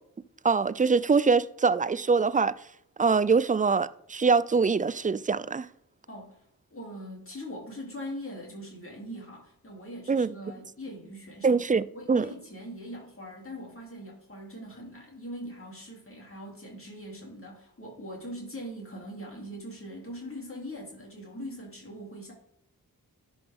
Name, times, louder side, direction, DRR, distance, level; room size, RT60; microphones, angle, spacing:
voice 1, 0.4-2.5 3.0-5.7 10.1-10.3 11.4-12.3, right 5 dB, 25° right, 0.4 m, -23 dB
voice 2, 6.7-11.6 11.9-22.3, equal, 35° left, 2.9 m, -41 dB
10.5 x 5.3 x 3.6 m
cardioid pair, 55°, 37 cm